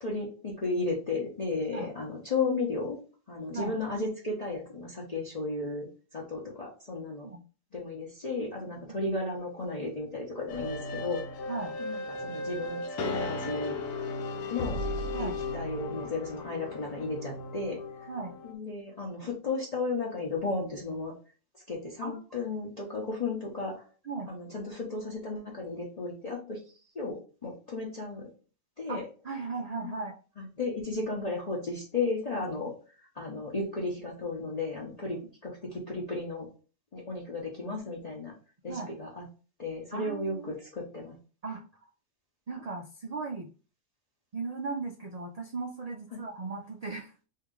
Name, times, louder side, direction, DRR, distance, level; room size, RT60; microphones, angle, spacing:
voice 1, 0.0-3.0 3.3-5.9 6.1-7.3 7.7-11.2 11.8-13.8 14.5-14.8 15.2-15.3 15.5-17.8 18.4-21.1 21.7-23.8 24.3-26.6 27.0-28.3 28.8-29.0 29.8-29.9 30.4-32.7 33.2-36.5 36.9-38.3 38.6-39.2 39.6-41.1 46.1-46.2, left 3 dB, 35° left, -4 dB, 0.7 m, -34 dB
sound 1, 10.5-18.5, left 2 dB, 85° left, 1.0 m, -35 dB
voice 2, 28.9-30.1 38.7-38.9 39.9-40.5 41.4-41.6 42.5-43.5 44.3-47.1, right 4 dB, 70° right, 1 dB, 0.3 m, -37 dB
2.9 x 2.8 x 3.6 m, 0.36 s
omnidirectional pair, 1.3 m